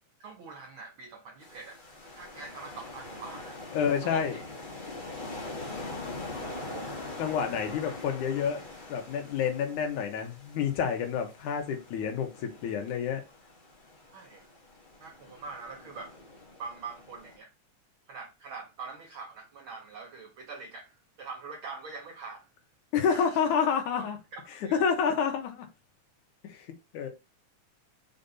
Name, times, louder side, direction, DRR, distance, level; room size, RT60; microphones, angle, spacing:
voice 1, 0.2-3.6 4.0-4.4 6.2-6.9 14.1-14.5 15.0-16.2 16.6-17.5 18.1-22.5 23.1-23.4 24.3-24.9, right 4 dB, 75° right, 1.2 m, -44 dB
sound 1, 1.4-17.4, left 2 dB, 25° left, 1.1 m, -43 dB
voice 2, 3.7-4.4 7.2-8.6 8.9-13.2 22.9-24.2 24.7-25.7 26.4-26.7 26.9-27.1, left 7 dB, 85° left, 2.7 m, -29 dB
5.4 x 5.0 x 4.2 m
omnidirectional pair, 3.4 m